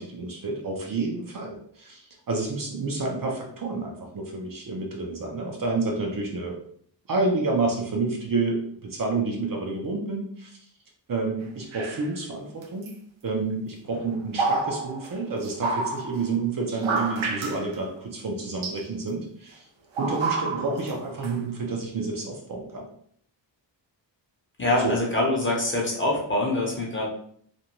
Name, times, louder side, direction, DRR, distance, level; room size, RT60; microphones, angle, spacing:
voice 1, 0.0-6.6 7.1-10.5 11.1-12.9 13.2-19.6 20.0-22.9 24.8-25.0, right 3 dB, 45° right, 0 dB, 0.6 m, -29 dB
sound 1, 11.7-12.1 12.6-12.9 13.9-16.3 16.7-17.8 18.6-18.8 19.9-20.9 21.2-21.3, right 3 dB, 90° right, 0.6 m, -29 dB
voice 2, 24.6-27.1, left 1 dB, 25° left, -2 dB, 0.7 m, -24 dB
2.6 x 2.2 x 2.9 m, 0.63 s
wide cardioid pair, 135°, 46 cm